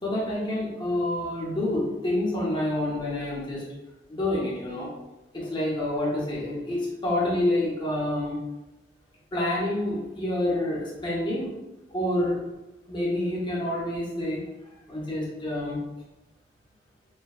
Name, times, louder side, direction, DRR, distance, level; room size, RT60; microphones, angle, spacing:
voice 1, 0.0-3.6 4.1-4.9 5.3-8.4 9.3-11.5 11.9-12.4 12.9-14.4 14.9-15.8, left 1 dB, 30° left, -6 dB, 0.7 m, -28 dB
3.1 x 2.1 x 2.3 m, 1.0 s
head